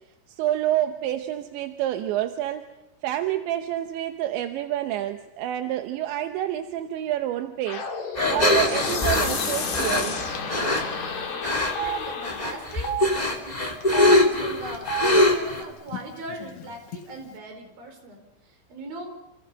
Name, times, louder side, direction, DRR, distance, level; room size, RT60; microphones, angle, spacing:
voice 1, 0.3-2.7 3.0-10.2, right 12 dB, 75° right, 7 dB, 3.0 m, -28 dB
sound 1, 7.7-12.7, left 5 dB, 40° left, 3.5 m, -31 dB
sound 2, 8.1-10.8 11.4-11.9 12.2-15.6, left 1 dB, 15° left, 1.6 m, -22 dB
Telephone, 8.9-9.1 9.3-9.5 10.4-10.5 10.8-10.9 11.6-12.0 12.7-13.0 13.8-14.1 14.8-15.1 15.9-16.0 16.3-17.0, right 6 dB, 70° left, 4.4 m, -30 dB
voice 2, 11.3-13.0 13.4-18.2 18.7-19.1, right 2 dB, 45° right, 4 dB, 6.1 m, -39 dB
29.5 x 28.5 x 5.5 m, 0.90 s
omnidirectional pair, 5.9 m